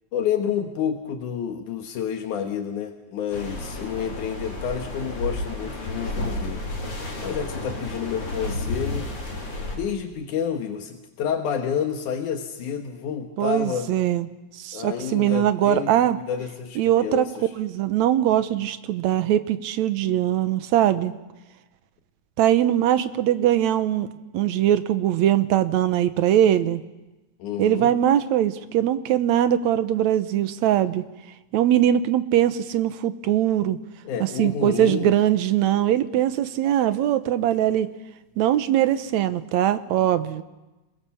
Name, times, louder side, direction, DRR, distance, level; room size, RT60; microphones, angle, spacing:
voice 1, 0.1-6.6 7.2-9.1 9.7-13.9 14.7-15.9 16.2-17.5 27.4-27.9 34.0-35.1, left 8 dB, 85° left, 5 dB, 2.8 m, -29 dB
sound 1, 3.3-9.8, left 2 dB, 45° left, 4.7 m, -31 dB
voice 2, 13.4-14.3 14.6-16.2 16.8-17.3 17.6-21.1 22.4-24.1 24.3-26.8 27.6-31.1 31.5-33.8 34.2-37.9 38.4-40.4, right 11 dB, 70° right, 12 dB, 2.2 m, -21 dB
28.0 x 22.0 x 7.2 m, 1.1 s
omnidirectional pair, 3.4 m